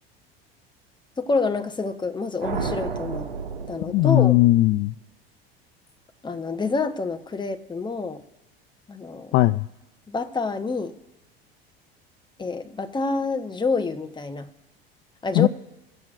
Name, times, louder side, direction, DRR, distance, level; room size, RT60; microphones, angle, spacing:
voice 1, 1.2-3.3 3.7-4.4 6.2-8.2 8.9-9.4 10.1-11.0 12.4-14.5 15.2-15.5, left 4 dB, 15° left, 7 dB, 1.0 m, -27 dB
sound 1, 2.4-4.6, right 5 dB, 80° right, 1.9 m, -32 dB
voice 2, 3.9-4.9 9.3-9.7 15.3-15.5, left 16 dB, 45° left, 15 dB, 0.4 m, -18 dB
21.5 x 7.7 x 2.5 m, 1.0 s
hypercardioid pair, 75°, 30 cm